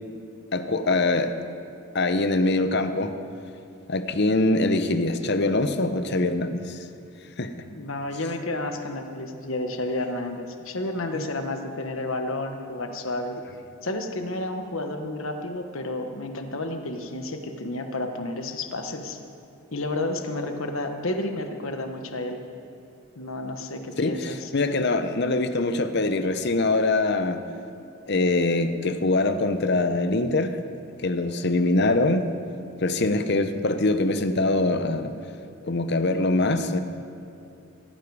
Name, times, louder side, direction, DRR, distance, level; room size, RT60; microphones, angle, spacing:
voice 1, 0.5-1.3 1.9-3.1 3.9-6.8 7.4-7.5 24.0-27.4 28.1-30.6 31.0-32.3 32.8-35.1 35.6-36.8, left 2 dB, 50° left, 9 dB, 0.8 m, -23 dB
voice 2, 7.7-13.4 13.8-19.2 19.7-22.4 23.2-24.5, left 2 dB, 65° left, 5 dB, 1.2 m, -31 dB
17.0 x 15.0 x 4.8 m, 2.6 s
head